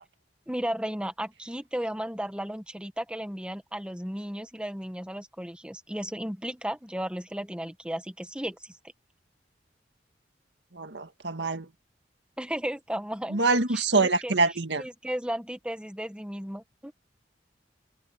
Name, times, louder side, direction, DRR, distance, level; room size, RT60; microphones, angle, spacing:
voice 1, 0.5-8.7 12.4-13.4 13.7-14.3 14.8-16.9, equal, 5° right, 1.4 m, -34 dB
voice 2, 10.7-11.7 13.3-14.8, right 3 dB, 80° right, 1.9 m, -25 dB
head